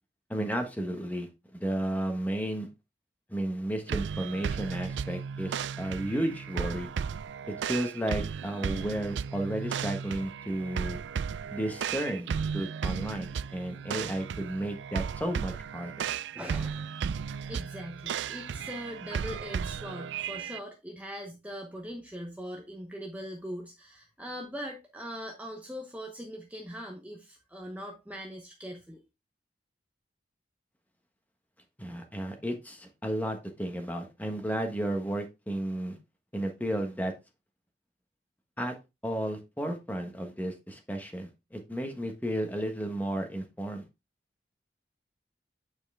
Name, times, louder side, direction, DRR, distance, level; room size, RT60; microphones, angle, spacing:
voice 1, 0.3-2.7 3.3-6.9 7.5-11.0 11.5-12.3 12.5-16.1 31.8-36.0 36.3-37.1 38.6-38.7 39.0-43.8, right 1 dB, 10° left, 4 dB, 1.3 m, -33 dB
sound 1, 3.9-20.6, right 6 dB, 85° right, 0.4 m, -35 dB
voice 2, 16.3-17.0 17.5-29.0, equal, 10° right, 1 dB, 0.9 m, -41 dB
9.0 x 4.8 x 3.5 m, 0.25 s
head